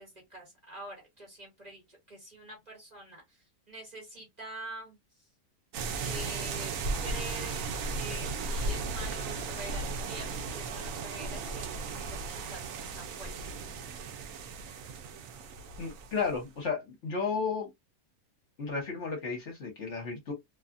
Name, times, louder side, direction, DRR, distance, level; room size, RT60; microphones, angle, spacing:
voice 1, 0.0-3.2 3.7-5.0 6.0-13.3, right 1 dB, 30° right, 1.3 m, -46 dB
sound 1, 5.7-16.4, right 3 dB, 70° right, 0.9 m, -36 dB
voice 2, 15.8-17.7 18.6-20.3, left 5 dB, 55° left, 1.1 m, -33 dB
2.7 x 2.3 x 2.5 m
omnidirectional pair, 1.6 m